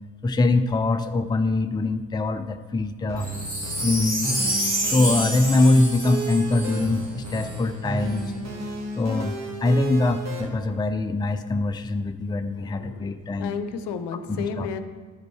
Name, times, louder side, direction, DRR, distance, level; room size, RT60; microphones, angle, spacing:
voice 1, 0.2-3.3 3.8-4.4 4.8-8.4 9.0-13.6 14.3-14.7, left 2 dB, 10° left, 8 dB, 0.5 m, -23 dB
sound 1, 3.1-10.5, right 2 dB, 35° right, 1.5 m, -33 dB
Wind chime, 3.2-7.5 8.1-8.2, equal, 20° right, 2.9 m, -28 dB
voice 2, 12.6-14.8, left 5 dB, 65° left, 10 dB, 0.7 m, -33 dB
11.0 x 5.2 x 4.6 m, 1.5 s
hypercardioid pair, 45°, 45 cm